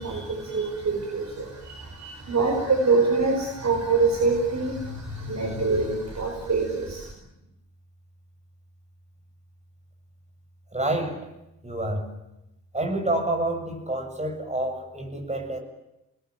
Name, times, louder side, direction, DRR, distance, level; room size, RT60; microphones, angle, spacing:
voice 1, 0.0-7.1, right 3 dB, 35° right, 3 dB, 4.7 m, -25 dB
voice 2, 10.7-11.3 11.6-12.1 12.7-15.6, right 1 dB, 15° right, 4 dB, 7.2 m, -28 dB
27.0 x 20.5 x 9.1 m, 0.88 s
figure-of-eight pair, 40°, 48 cm